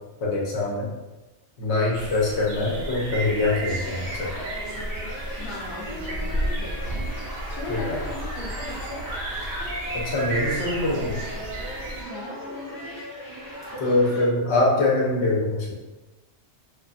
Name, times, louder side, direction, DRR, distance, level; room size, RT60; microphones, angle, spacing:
voice 1, 0.2-0.9 1.6-4.3 7.7-8.0 9.9-11.2 13.8-15.8, left 2 dB, 75° left, -4 dB, 1.0 m, -24 dB
sound 1, 1.9-12.0, right 1 dB, 75° right, 0.9 m, -32 dB
sound 2, 3.4-14.3, equal, 25° right, 0.5 m, -38 dB
voice 2, 5.4-7.1 7.5-9.1 12.1-13.1, left 2 dB, 35° left, -4 dB, 0.5 m, -38 dB
2.5 x 2.3 x 2.5 m, 1.1 s
omnidirectional pair, 1.2 m